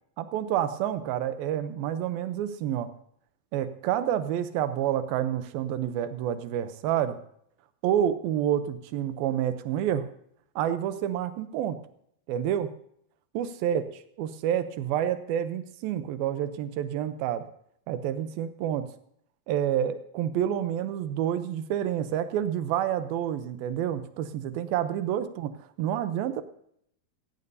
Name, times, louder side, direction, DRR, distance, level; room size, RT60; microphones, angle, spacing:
voice 1, 0.2-2.9 3.5-7.2 7.8-10.1 10.6-11.8 12.3-12.7 13.3-13.8 14.2-17.4 17.9-18.9 19.5-25.5 25.8-26.4, right 10 dB, 85° right, 11 dB, 2.6 m, -28 dB
16.0 x 15.0 x 2.7 m, 0.70 s
omnidirectional pair, 4.2 m